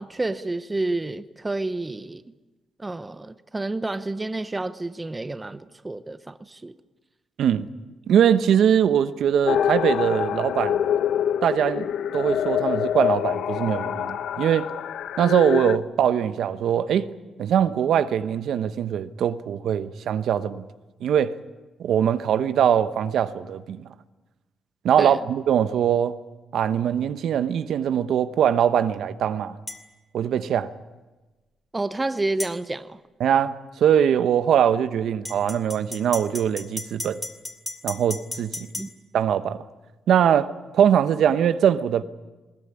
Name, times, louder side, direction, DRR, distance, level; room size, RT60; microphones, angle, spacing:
voice 1, 0.0-2.2 2.8-6.7 25.0-25.2 31.7-33.0 38.8-38.9, right 2 dB, 15° right, 0.7 m, -29 dB
voice 2, 7.4-7.7 8.1-10.8 11.4-14.7 15.2-17.1 17.4-20.6 21.0-21.3 21.8-23.9 24.8-26.2 26.5-29.6 30.1-30.7 33.2-37.2 37.8-38.7 39.1-39.6 40.1-42.0, right 9 dB, 65° right, 1.0 m, -22 dB
sound 1, 9.5-15.8, left 9 dB, 75° left, 0.7 m, -25 dB
sound 2, 29.7-29.8 32.4-32.6 35.2-38.9, left 2 dB, 15° left, 2.5 m, -34 dB
20.5 x 20.5 x 9.8 m
cardioid pair, 165°, 0 cm